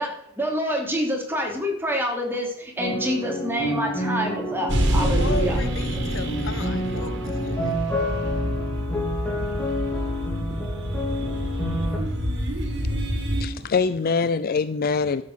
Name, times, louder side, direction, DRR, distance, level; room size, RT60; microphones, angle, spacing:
voice 1, 0.0-5.6 10.4-10.7 11.3-11.8 12.9-13.0, equal, 10° right, 3.1 m, -28 dB
sound 1, 2.8-12.0, left 1 dB, 5° left, 3.7 m, -29 dB
sound 2, 4.7-13.4, equal, 60° right, 2.4 m, -27 dB
voice 2, 5.0-7.7, left 3 dB, 65° left, 1.0 m, -35 dB
voice 3, 13.3-15.2, left 5 dB, 45° left, 0.5 m, -24 dB
12.5 x 7.5 x 6.3 m
head